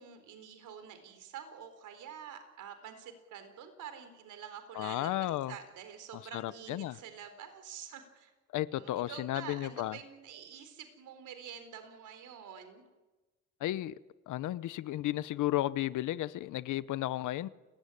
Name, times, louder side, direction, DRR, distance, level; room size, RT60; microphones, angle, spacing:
voice 1, 0.0-8.3 8.7-12.8, right 8 dB, 80° right, 4.1 m, -47 dB
voice 2, 4.7-5.5 6.3-7.0 8.5-10.0 13.6-14.0 14.3-17.5, left 15 dB, 85° left, 0.9 m, -33 dB
29.0 x 17.0 x 9.9 m
cardioid pair, 90°, 30 cm